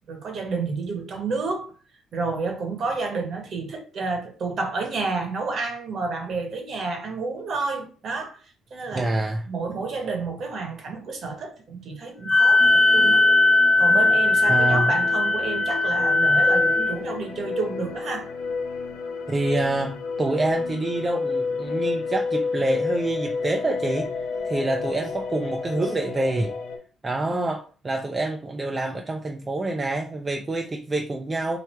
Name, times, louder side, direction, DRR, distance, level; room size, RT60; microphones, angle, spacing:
voice 1, 0.1-1.7 2.1-8.4 8.7-9.1 9.5-13.2 13.8-18.3, right 4 dB, 50° right, 1.0 m, -30 dB
voice 2, 8.9-9.5 14.5-15.0 19.3-24.1 24.4-26.5 27.0-31.6, right 2 dB, 20° right, 0.4 m, -26 dB
Wind instrument woodwind instrument, 12.3-17.0, left 2 dB, 20° left, 0.7 m, -19 dB
sound 1, 12.6-26.8, left 4 dB, 90° left, 0.8 m, -31 dB
3.1 x 2.3 x 4.3 m
cardioid pair, 125°, 0 cm